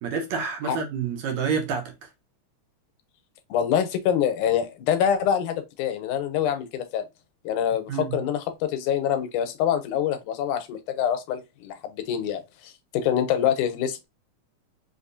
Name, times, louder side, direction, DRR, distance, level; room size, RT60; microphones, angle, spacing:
voice 1, 0.0-2.1 7.9-8.2, right 6 dB, 70° right, 2.0 m, -28 dB
voice 2, 3.5-7.1 7.4-14.1, left 9 dB, 90° left, 2.1 m, -25 dB
5.2 x 2.7 x 2.6 m
omnidirectional pair, 3.5 m